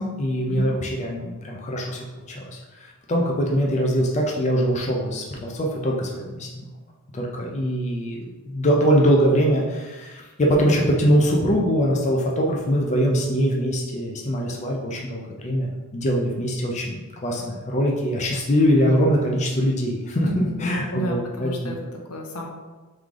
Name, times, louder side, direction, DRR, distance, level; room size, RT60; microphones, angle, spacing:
voice 1, 0.0-6.6 7.1-21.5, equal, 30° left, -1 dB, 0.5 m, -23 dB
voice 2, 20.2-22.5, right 1 dB, 80° left, 0 dB, 0.8 m, -32 dB
3.6 x 3.2 x 3.7 m, 1.2 s
head